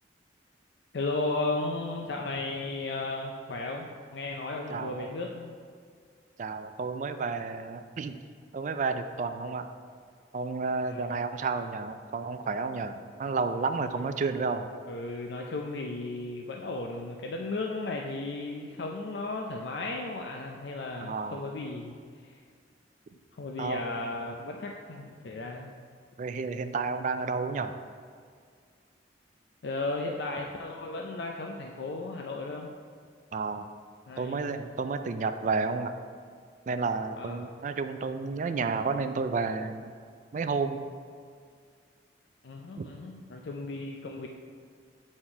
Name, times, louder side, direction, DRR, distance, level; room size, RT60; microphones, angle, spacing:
voice 1, 0.9-5.5 10.9-11.1 13.8-14.1 14.9-22.0 22.2-22.4 23.3-25.7 29.6-32.7 34.1-34.6 37.2-37.5 42.4-44.3, left 2 dB, 65° left, 1 dB, 0.5 m, -35 dB
voice 2, 4.7-5.1 6.4-8.2 8.5-9.6 10.3-14.7 21.0-21.4 23.6-23.8 26.2-27.7 33.3-33.7 34.2-35.9 36.7-39.9 40.3-40.9 42.8-42.9, right 4 dB, 40° right, 9 dB, 0.3 m, -31 dB
7.8 x 4.2 x 4.8 m, 2.1 s
head